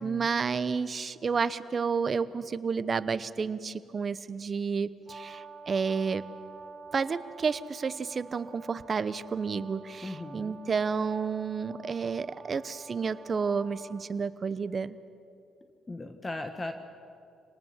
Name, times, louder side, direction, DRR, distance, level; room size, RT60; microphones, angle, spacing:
voice 1, 0.0-6.2 6.9-15.0, right 5 dB, 40° right, 14 dB, 0.9 m, -31 dB
Brass instrument, 5.1-14.1, right 4 dB, 5° right, 4.2 m, -48 dB
voice 2, 10.0-10.6 15.9-16.7, left 2 dB, 25° left, 7 dB, 1.4 m, -38 dB
26.5 x 19.0 x 7.4 m, 2.5 s
cardioid pair, 90°, 0 cm